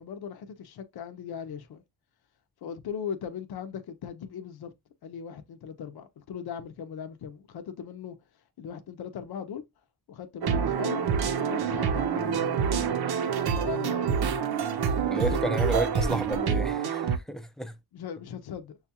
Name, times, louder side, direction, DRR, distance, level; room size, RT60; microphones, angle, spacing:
voice 1, 0.0-1.8 2.6-4.7 5.0-8.2 8.6-9.6 10.1-11.0 11.4-13.1 13.6-14.2 15.1-15.6 17.9-18.8, left 7 dB, 65° left, 0.7 m, -39 dB
sound 1, 10.4-17.2, right 7 dB, 65° right, 0.7 m, -27 dB
voice 2, 15.1-17.8, right 1 dB, ahead, 0.5 m, -31 dB
6.4 x 2.4 x 2.8 m
cardioid pair, 95°, 40 cm